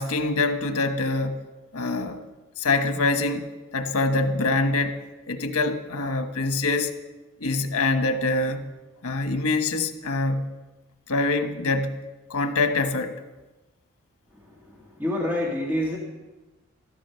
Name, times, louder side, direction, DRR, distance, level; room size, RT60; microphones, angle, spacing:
voice 1, 0.0-1.4 1.7-2.2 2.6-7.0 7.4-8.7 9.0-10.5 11.1-12.0 12.3-13.1, left 3 dB, 85° left, 7 dB, 1.3 m, -25 dB
voice 2, 14.4-16.0, left 1 dB, 10° right, -3 dB, 1.9 m, -28 dB
13.5 x 13.0 x 5.7 m, 1.1 s
head